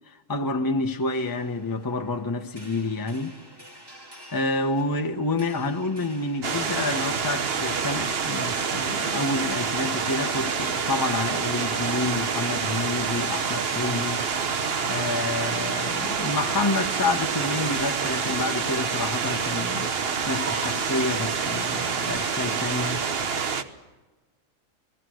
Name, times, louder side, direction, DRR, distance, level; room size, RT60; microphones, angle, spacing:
voice 1, 0.1-3.4 4.3-14.2 14.9-19.9 20.3-23.0, left 2 dB, 15° left, 0.9 m, -28 dB
sound 1, 1.1-16.8, right 2 dB, 15° right, 2.4 m, -46 dB
sound 2, 6.4-23.6, right 5 dB, 50° right, 1.2 m, -27 dB
29.0 x 20.0 x 6.4 m
omnidirectional pair, 1.4 m